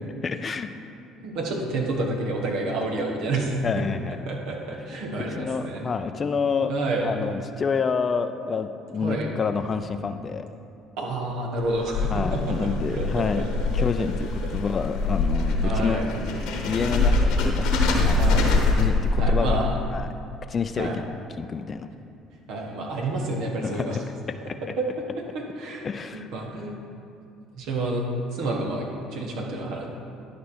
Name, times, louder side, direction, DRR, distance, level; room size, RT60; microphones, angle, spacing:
voice 1, 0.2-0.7 3.6-4.2 5.4-6.7 7.0-10.5 12.1-13.4 13.7-16.1 16.7-18.2 18.8-19.6 19.9-20.1 20.5-21.0 21.4-21.9 23.6-24.0 24.5-24.6 25.8-26.3, left 5 dB, 40° left, 9 dB, 0.5 m, -28 dB
voice 2, 1.2-3.8 4.3-5.8 6.7-7.1 9.0-9.3 11.0-13.5 14.0-14.1 14.4-14.5 15.6-16.2 18.2-18.6 19.2-19.8 20.8-21.0 22.5-24.0 24.8-25.9 26.1-26.8 27.5-29.9, right 2 dB, 70° right, -1 dB, 1.4 m, -29 dB
sound 1, 11.6-19.9, left 3 dB, 70° left, 1.1 m, -24 dB
11.0 x 5.1 x 4.3 m, 2.5 s
hypercardioid pair, 60°, 0 cm